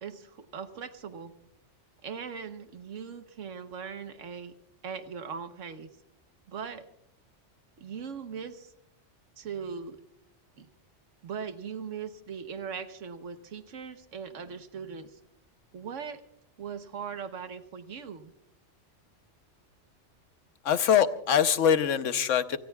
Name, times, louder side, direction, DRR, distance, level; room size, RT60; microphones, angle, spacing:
voice 1, 0.0-1.3 2.0-4.5 4.8-5.9 6.5-6.8 7.8-8.7 9.4-10.0 10.6-10.7 11.2-15.2 15.7-16.2 16.6-18.3, right 6 dB, 80° right, 1.4 m, -39 dB
voice 2, 20.6-22.6, left 8 dB, 85° left, 1.2 m, -23 dB
29.0 x 18.5 x 2.3 m
omnidirectional pair, 1.3 m